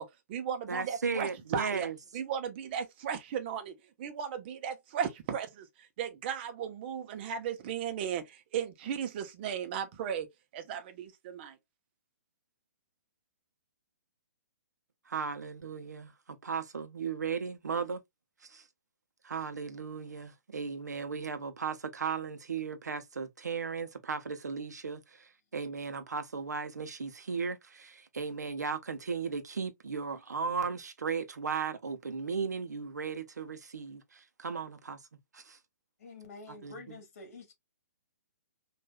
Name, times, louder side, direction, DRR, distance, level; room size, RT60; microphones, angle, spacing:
voice 1, 0.0-1.9 2.1-5.7 6.0-10.3 10.5-11.5, right 8 dB, 35° right, 0.9 m, -36 dB
voice 2, 0.7-2.0 15.1-18.0 18.5-18.6 19.2-35.0 35.3-35.6 36.5-37.0, right 5 dB, 70° right, 0.9 m, -36 dB
voice 3, 36.0-37.5, left 3 dB, 50° left, 1.8 m, -48 dB
5.2 x 2.7 x 2.3 m
figure-of-eight pair, 125°, 9 cm